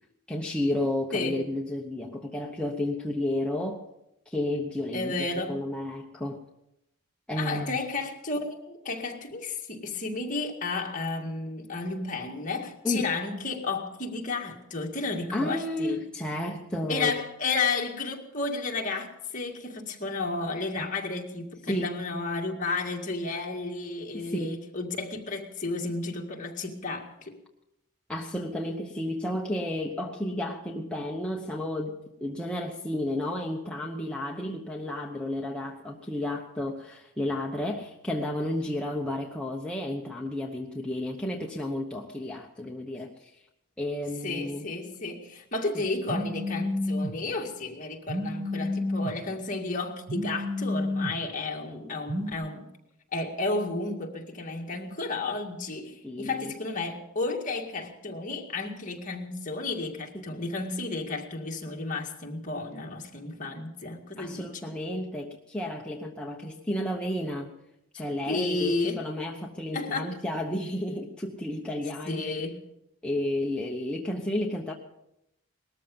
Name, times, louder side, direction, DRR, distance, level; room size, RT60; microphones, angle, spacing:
voice 1, 0.3-3.8 4.3-5.1 5.5-6.4 7.3-7.8 12.8-13.1 15.3-17.2 21.7-21.9 24.1-24.6 28.1-43.3 43.8-44.7 45.7-45.9 48.5-48.7 51.7-51.9 56.0-56.5 60.1-60.3 64.2-67.5 67.9-72.3 73.0-74.7, left 1 dB, 5° left, -1 dB, 0.9 m, -32 dB
voice 2, 1.1-1.5 4.9-5.6 7.4-16.0 16.9-27.4 44.2-52.7 53.1-64.7 68.3-69.1 69.7-70.2 72.1-72.6, left 3 dB, 35° left, 1 dB, 2.1 m, -32 dB
Telephone, 46.1-47.1 48.1-49.1 50.1-51.1 52.1-52.3, left 1 dB, 60° right, 2.0 m, -30 dB
19.5 x 13.5 x 5.4 m, 0.85 s
head